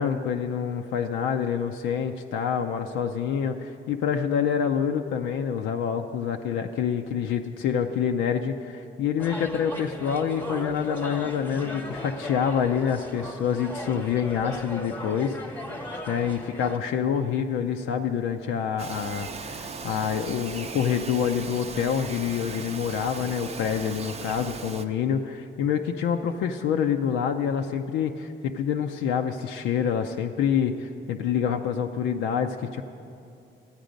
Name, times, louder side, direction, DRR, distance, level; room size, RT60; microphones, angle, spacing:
voice 1, 0.0-15.5 16.1-32.8, left 7 dB, 90° left, 4 dB, 0.5 m, -27 dB
sound 1, 9.2-16.8, left 1 dB, 10° left, 0.9 m, -37 dB
Bird vocalization bird call bird song, 18.8-24.9, right 4 dB, 30° right, 0.6 m, -38 dB
13.0 x 8.9 x 5.1 m, 2.5 s
cardioid pair, 90°, 20 cm